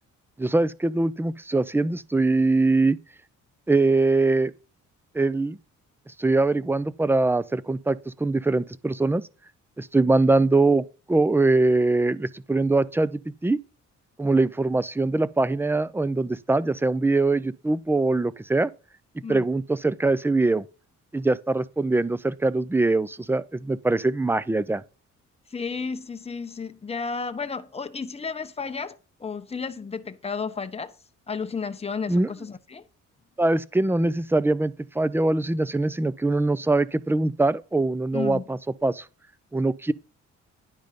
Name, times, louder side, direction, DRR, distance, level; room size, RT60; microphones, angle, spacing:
voice 1, 0.4-3.0 3.7-4.5 5.1-5.6 6.2-9.2 9.8-13.6 14.2-18.7 19.3-20.7 21.1-24.8 32.1-32.3 33.4-39.0 39.5-39.9, right 2 dB, 5° right, 0.5 m, -22 dB
voice 2, 25.5-30.9 31.3-32.9 38.1-38.4, left 5 dB, 20° left, 0.9 m, -32 dB
10.5 x 5.2 x 5.2 m
cardioid pair, 90°, 30 cm